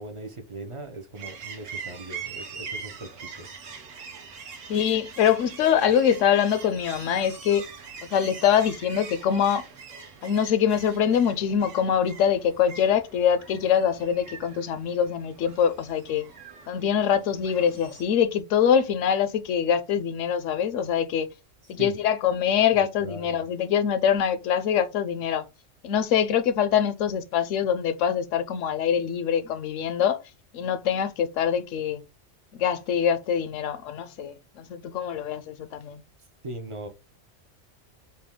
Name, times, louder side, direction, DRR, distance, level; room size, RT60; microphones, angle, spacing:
voice 1, 0.0-3.5 21.8-21.9 22.7-23.4 36.4-36.9, right 2 dB, 45° right, 0.4 m, -39 dB
sound 1, 1.1-18.0, right 6 dB, 85° right, 1.2 m, -43 dB
voice 2, 4.7-7.6 8.1-9.6 10.2-16.2 16.7-21.3 21.7-25.5 25.8-30.2 30.5-32.0 32.6-36.0, left 8 dB, 80° left, 0.9 m, -24 dB
4.1 x 2.2 x 3.5 m
omnidirectional pair, 1.3 m